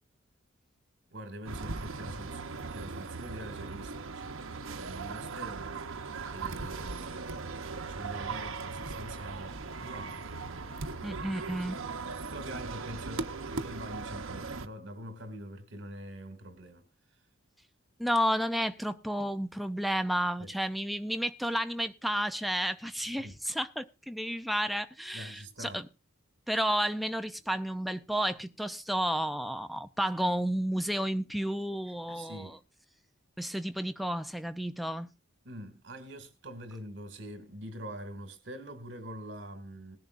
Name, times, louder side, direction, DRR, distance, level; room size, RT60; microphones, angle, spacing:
voice 1, 1.1-5.8 6.3-11.0 12.3-16.8 20.4-20.5 22.9-23.3 25.1-25.8 32.1-32.6 35.4-40.0, right 1 dB, 60° right, 2.3 m, -45 dB
sound 1, 1.5-14.7, right 4 dB, 85° right, 0.9 m, -38 dB
voice 2, 11.0-11.8 18.0-25.9 26.5-32.6 33.4-35.1, equal, ahead, 0.5 m, -31 dB
20.5 x 10.5 x 2.5 m
head